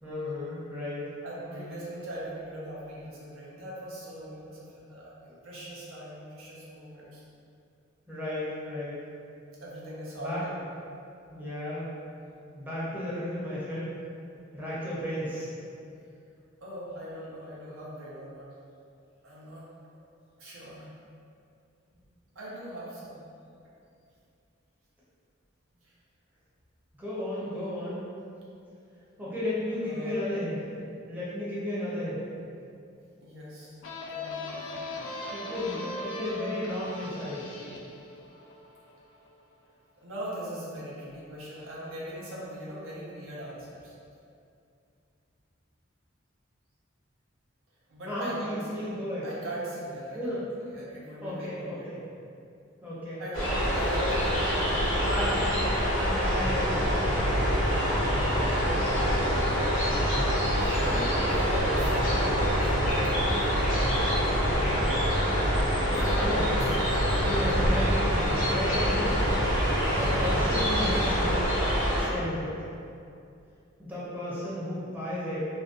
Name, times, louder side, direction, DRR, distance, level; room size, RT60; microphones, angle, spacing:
voice 1, 0.0-1.0 1.5-1.7 8.1-9.0 10.2-10.4 11.3-11.9 12.5-13.9 14.5-15.5 27.0-28.0 29.2-30.6 31.0-32.3 35.3-37.6 48.1-49.3 50.1-50.4 51.2-52.0 52.8-53.2 55.0-55.5 55.9-56.9 57.2-57.7 66.2-66.8 67.2-71.5 72.0-72.5 73.8-75.4, left 1 dB, 10° right, -10 dB, 0.5 m, -34 dB
voice 2, 1.2-7.2 9.6-10.5 16.6-18.5 19.2-19.7 20.4-20.9 21.9-22.0 22.3-23.2 25.8-25.9 29.8-30.4 33.2-33.8 34.1-34.6 40.0-43.9 47.9-48.9 49.2-51.9 53.1-55.6 59.2-64.8 65.9-66.3 66.8-67.7, right 1 dB, 80° right, -6 dB, 0.6 m, -40 dB
sound 1, 33.8-39.3, left 2 dB, 70° left, 0.3 m, -39 dB
sound 2, 53.3-72.0, equal, 85° left, 0.8 m, -26 dB
sound 3, 56.4-71.1, equal, 40° right, 0.9 m, -35 dB
2.4 x 2.0 x 2.4 m, 2.5 s
head